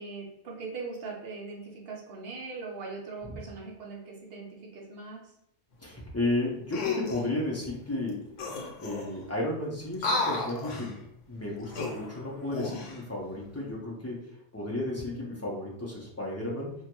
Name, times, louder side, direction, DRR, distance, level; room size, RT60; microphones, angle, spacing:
voice 1, 0.0-5.3, right 4 dB, 55° right, -1 dB, 0.9 m, -40 dB
voice 2, 5.8-8.2 8.8-11.0 11.3-16.7, left 1 dB, 20° left, -4 dB, 0.4 m, -33 dB
sound 1, 6.7-7.3 8.1-8.2 8.4-9.2 9.9-10.9 11.6-13.0 13.5-13.7, left 3 dB, 75° left, 1.0 m, -33 dB
3.7 x 2.2 x 2.9 m, 0.71 s
omnidirectional pair, 1.3 m